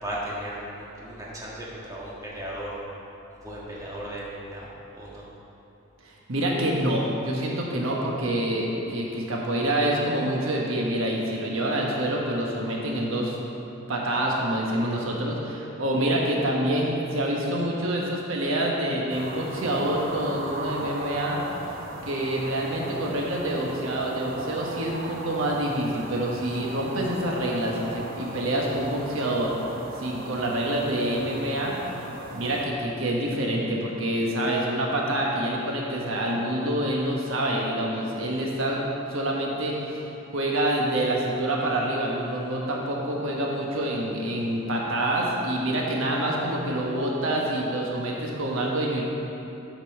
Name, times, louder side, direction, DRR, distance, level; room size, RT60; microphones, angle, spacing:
voice 1, 0.0-2.8 3.4-4.7 4.9-5.2, right 1 dB, 15° right, -6 dB, 1.6 m, -36 dB
voice 2, 6.0-13.4 13.9-21.4 22.0-29.5 30.0-31.7 32.3-38.8 39.1-49.0, right 1 dB, 75° right, -2 dB, 1.2 m, -27 dB
sound 1, 19.1-32.7, right 2 dB, 45° right, 0.8 m, -38 dB
9.0 x 5.3 x 6.4 m, 3.0 s
head